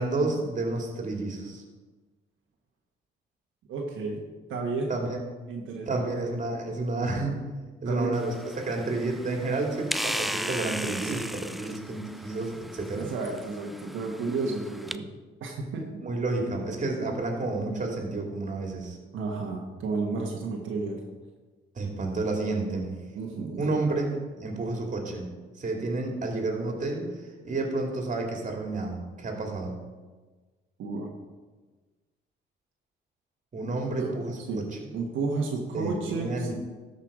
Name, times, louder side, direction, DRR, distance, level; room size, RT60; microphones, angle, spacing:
voice 1, 0.0-1.6 4.9-5.2 5.9-7.4 7.8-13.1 16.0-19.0 21.7-22.9 23.6-25.3 25.6-29.7 33.5-34.6 35.7-36.5, right 2 dB, 40° right, 1 dB, 2.5 m, -30 dB
voice 2, 3.7-4.2 4.5-4.9 5.5-6.0 7.8-8.1 11.0-11.2 12.9-15.1 15.4-15.9 19.1-21.0 23.1-23.8 30.8-31.1 33.6-33.7 34.0-34.6 34.9-36.5, right 3 dB, 80° right, 0 dB, 1.4 m, -32 dB
sound 1, 8.1-15.0, equal, ahead, 0.4 m, -37 dB
13.0 x 5.7 x 4.9 m, 1.3 s
cardioid pair, 90°, 20 cm